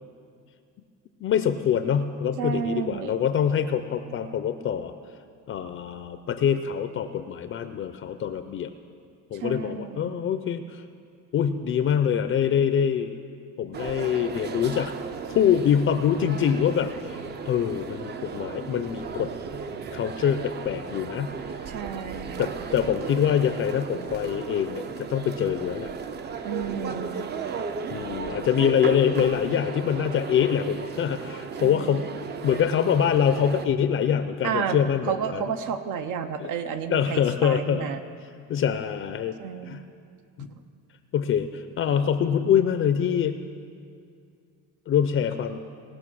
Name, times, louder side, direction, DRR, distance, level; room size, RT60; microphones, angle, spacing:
voice 1, 1.2-4.9 5.5-8.7 9.3-10.8 11.3-13.2 13.6-14.9 15.3-19.3 19.9-21.3 22.4-25.9 27.9-32.1 32.4-35.4 36.4-36.5 36.9-37.9 38.5-39.4 39.7-39.8 40.4-40.5 41.1-43.4 44.9-45.6, left 8 dB, 40° left, 9 dB, 0.5 m, -24 dB
voice 2, 2.4-3.2 9.3-10.2 21.7-22.5 26.4-27.3 31.6-32.0 34.4-34.8 35.0-38.0 39.4-39.8, right 7 dB, 70° right, 8 dB, 0.7 m, -31 dB
sound 1, 13.7-33.7, right 5 dB, 35° right, 0.5 m, -35 dB
18.5 x 6.3 x 6.2 m, 2.3 s
cardioid pair, 145°, 31 cm